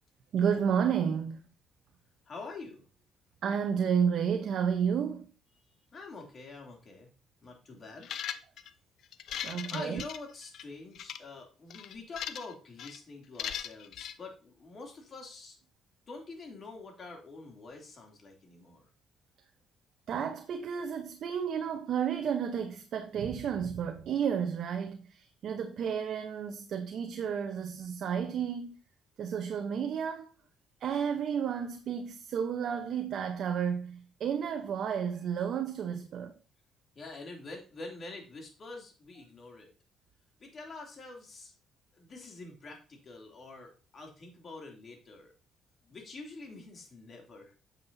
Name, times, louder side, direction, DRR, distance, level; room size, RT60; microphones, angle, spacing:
voice 1, 0.3-1.5 3.4-5.3 9.4-10.0 20.1-28.8 29.2-30.3 30.8-36.3, right 7 dB, 60° right, 0.8 m, -31 dB
voice 2, 2.3-2.9 5.9-7.1 7.4-8.1 9.7-15.6 16.1-18.9 36.9-39.7 40.4-41.5 41.9-45.3 45.8-47.5, left 3 dB, 40° left, 2.7 m, -46 dB
sound 1, 8.0-8.7 9.1-10.6 11.0-11.2 11.7-12.5 12.8-13.0 13.4-14.1, left 9 dB, 65° left, 0.5 m, -39 dB
9.5 x 7.3 x 2.7 m
cardioid pair, 115°, 0 cm